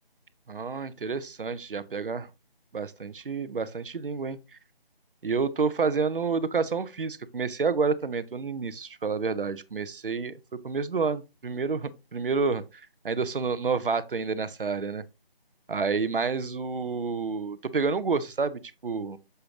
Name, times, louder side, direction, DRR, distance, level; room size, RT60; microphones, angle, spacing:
voice 1, 0.5-2.3 2.7-4.4 5.2-10.4 10.6-15.0 15.7-19.2, right 4 dB, 60° right, 0.7 m, -29 dB
6.7 x 5.0 x 2.8 m
figure-of-eight pair, 165°, 30 cm